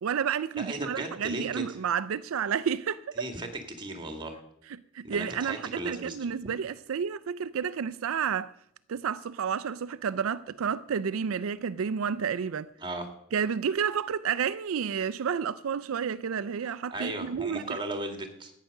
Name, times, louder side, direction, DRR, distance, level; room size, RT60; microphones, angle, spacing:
voice 1, 0.0-3.3 4.9-8.5 8.9-12.7 13.3-17.8, right 7 dB, 80° right, 0.4 m, -30 dB
voice 2, 0.6-1.8 3.2-3.5 3.8-4.4 5.0-6.3 12.8-13.1 16.6-18.5, right 1 dB, 25° right, 2.1 m, -36 dB
14.0 x 9.3 x 6.6 m
head